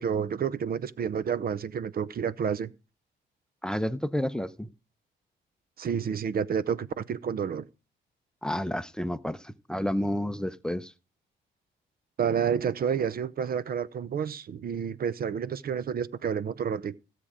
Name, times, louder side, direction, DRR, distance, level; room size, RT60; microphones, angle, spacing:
voice 1, 0.0-2.7 5.8-7.7 12.2-17.0, right 7 dB, 50° right, 0.6 m, -29 dB
voice 2, 3.6-4.7 8.4-10.9, equal, 5° left, 0.7 m, -30 dB
16.0 x 7.5 x 5.0 m
cardioid pair, 90°, 20 cm